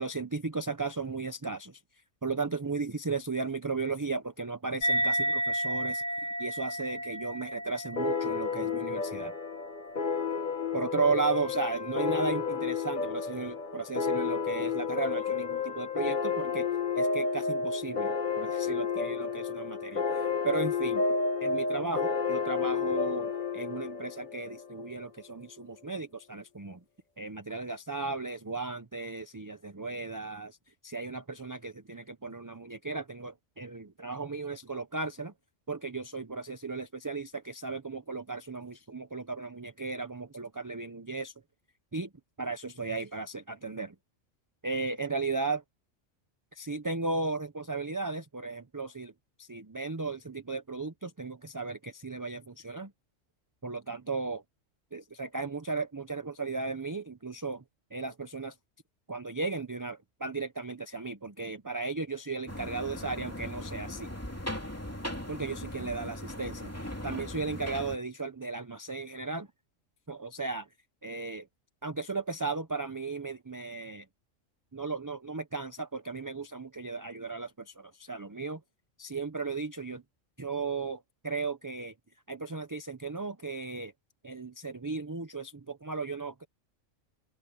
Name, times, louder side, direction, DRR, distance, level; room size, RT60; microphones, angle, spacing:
voice 1, 0.0-1.8 2.2-6.0 6.4-9.3 10.7-16.7 17.0-21.0 21.4-26.8 27.2-30.6 30.8-35.3 35.7-41.3 41.9-42.1 42.4-43.9 44.6-45.6 46.5-49.1 49.4-52.9 53.6-54.4 54.9-57.6 57.9-58.5 59.1-64.1 65.3-66.7 67.0-69.5 70.1-70.7 71.0-71.5 71.8-74.1 74.7-78.6 79.0-80.0 80.4-81.9 82.3-83.9 84.2-86.5, right 4 dB, 20° right, 0.6 m, -35 dB
sound 1, 4.8-11.7, equal, 65° left, 1.6 m, -34 dB
sound 2, 8.0-25.1, left 5 dB, 40° left, 1.4 m, -31 dB
sound 3, 62.5-68.0, left 1 dB, 10° left, 2.8 m, -39 dB
open air
omnidirectional pair, 1.3 m